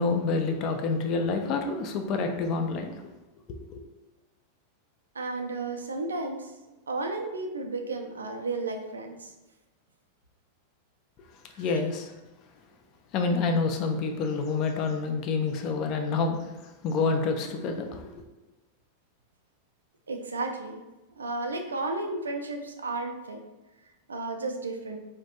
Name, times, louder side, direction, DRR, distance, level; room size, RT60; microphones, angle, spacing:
voice 1, 0.0-2.9 3.5-3.8 11.6-12.1 13.1-16.5 16.8-18.0, left 4 dB, 40° left, 5 dB, 0.3 m, -28 dB
voice 2, 5.2-6.5 6.9-9.3 11.5-11.6 20.1-20.8 21.2-23.4 24.1-25.0, right 3 dB, 70° right, 4 dB, 0.3 m, -33 dB
2.3 x 2.1 x 2.8 m, 1.1 s
figure-of-eight pair, 90°, 0 cm